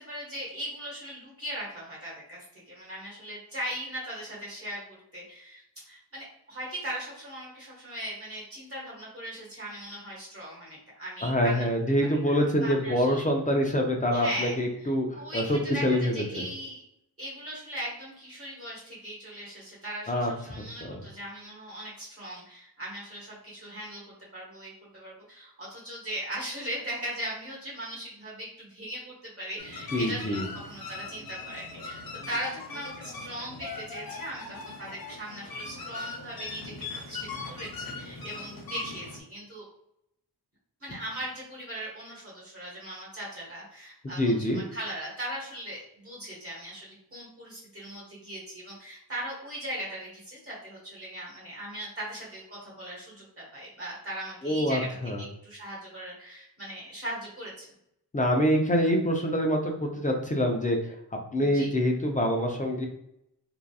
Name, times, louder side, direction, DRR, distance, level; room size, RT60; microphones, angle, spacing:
voice 1, 0.0-11.7 12.1-13.2 14.1-14.5 14.8-16.8 17.2-24.0 24.3-30.4 30.7-36.7 37.1-39.6 40.8-54.9 55.2-57.7 61.4-61.7, right 1 dB, 35° right, -6 dB, 1.0 m, -39 dB
voice 2, 11.2-16.5 20.1-21.0 29.9-30.4 44.2-44.6 54.4-55.2 58.1-60.8 61.3-62.9, equal, 20° left, 1 dB, 0.3 m, -26 dB
sound 1, 29.6-39.2, left 3 dB, 60° left, 0.6 m, -40 dB
2.8 x 2.3 x 2.2 m, 0.79 s
wide cardioid pair, 110°, 40 cm